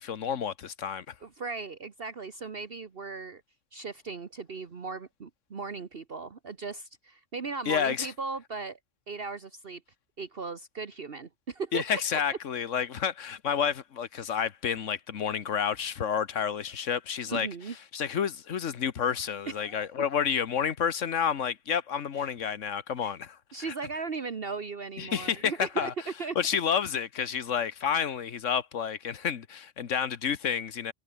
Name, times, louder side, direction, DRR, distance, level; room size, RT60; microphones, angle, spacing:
voice 1, 0.0-1.1 7.7-8.1 11.7-17.5 17.9-23.7 25.0-25.9 26.3-30.9, left 7 dB, 75° left, 1.5 m, -30 dB
voice 2, 1.2-3.4 3.7-8.8 9.1-9.8 10.2-11.8 17.3-17.7 19.5-19.9 22.2-22.5 23.0-23.2 23.5-25.9 26.2-26.4, right 4 dB, 50° right, 1.5 m, -37 dB
omnidirectional pair, 1.3 m